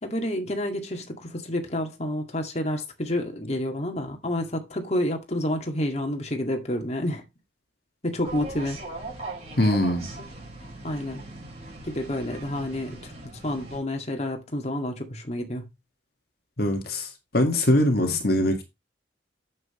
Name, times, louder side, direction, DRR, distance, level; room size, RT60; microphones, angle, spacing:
voice 1, 0.0-7.2 8.0-8.8 10.2-10.3 10.8-11.2 11.8-15.7 18.0-18.2, left 1 dB, 35° left, 2.0 m, -29 dB
sound 1, 8.2-13.8, right 3 dB, 35° right, 6.0 m, -39 dB
voice 2, 9.6-10.1 16.6-17.1 17.3-18.6, left 1 dB, 55° left, 1.8 m, -22 dB
9.2 x 7.7 x 3.1 m
head